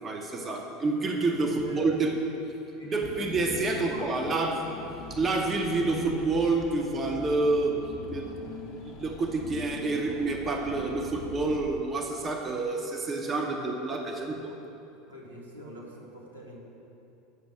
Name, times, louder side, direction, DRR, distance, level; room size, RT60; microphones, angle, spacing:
voice 1, 0.0-2.1 2.8-4.7 5.1-7.8 8.1-8.3 8.8-14.5, right 3 dB, 25° right, 2 dB, 0.9 m, -28 dB
voice 2, 1.1-1.9 2.7-3.6 3.9-4.1 15.1-16.6, equal, 85° right, -3 dB, 1.4 m, -45 dB
Car / Engine, 3.0-12.2, left 5 dB, 45° left, 0.8 m, -43 dB
8.2 x 6.1 x 6.2 m, 2.8 s
figure-of-eight pair, 75°, 0 cm